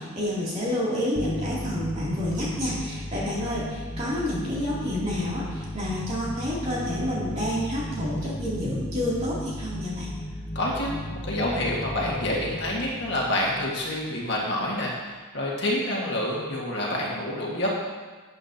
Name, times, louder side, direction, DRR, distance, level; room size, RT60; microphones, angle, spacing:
voice 1, 0.0-10.1, left 1 dB, 30° right, -7 dB, 2.8 m, -29 dB
sound 1, 1.2-14.3, left 1 dB, 15° left, 0.7 m, -35 dB
voice 2, 10.6-17.7, left 1 dB, 55° left, -4 dB, 1.8 m, -28 dB
12.5 x 8.4 x 2.9 m, 1.4 s
head